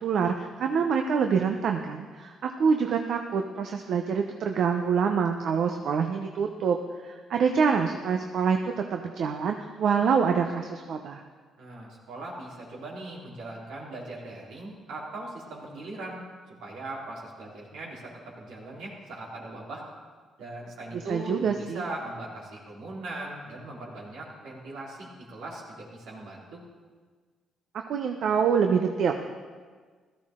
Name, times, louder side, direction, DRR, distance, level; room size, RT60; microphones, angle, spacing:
voice 1, 0.0-6.8 7.0-11.2 20.9-21.8 27.9-29.1, right 6 dB, 70° right, 4 dB, 0.8 m, -26 dB
voice 2, 11.6-16.2 16.6-19.8 20.4-26.6, right 2 dB, 85° right, -4 dB, 3.8 m, -39 dB
16.5 x 13.5 x 3.8 m, 1.5 s
cardioid pair, 90°, 0 cm